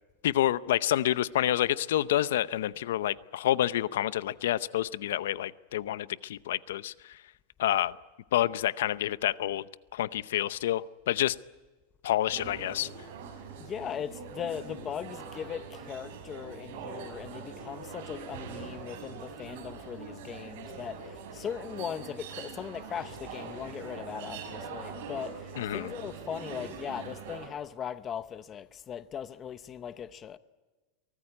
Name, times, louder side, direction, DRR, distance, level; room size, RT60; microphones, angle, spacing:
voice 1, 0.2-7.2 7.6-7.9 8.3-9.7 9.9-11.4 12.0-12.9 25.6-25.9, left 12 dB, 80° left, 0.7 m, -28 dB
sound 1, 12.3-27.5, right 5 dB, 55° right, 6.5 m, -43 dB
voice 2, 13.6-30.4, left 8 dB, 20° left, 0.7 m, -39 dB
24.0 x 18.5 x 9.6 m
supercardioid pair, 170°, 0 cm